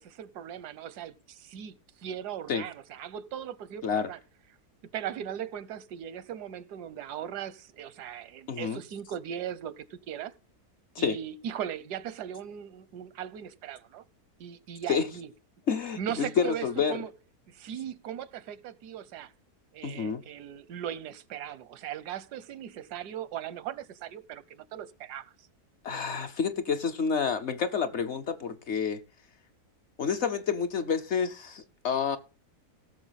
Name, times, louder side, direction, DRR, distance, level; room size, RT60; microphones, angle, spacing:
voice 1, 0.0-4.2 4.9-10.3 11.0-14.0 14.4-15.3 16.0-17.1 17.5-19.3 19.7-25.3, right 10 dB, 90° right, 1.3 m, -38 dB
voice 2, 8.5-8.8 10.9-11.2 14.9-15.1 15.7-17.0 19.8-20.2 25.8-29.0 30.0-32.2, left 6 dB, 55° left, 0.9 m, -29 dB
17.0 x 6.7 x 4.0 m
omnidirectional pair, 1.7 m